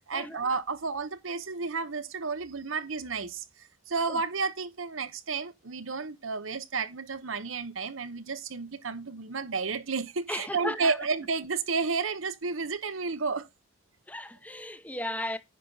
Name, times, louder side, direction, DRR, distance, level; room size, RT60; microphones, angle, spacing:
voice 1, 0.1-3.4 3.9-13.4, right 4 dB, 90° right, 1.0 m, -31 dB
voice 2, 10.3-10.9 14.1-15.4, left 1 dB, 10° left, 0.7 m, -35 dB
10.5 x 5.9 x 4.0 m
head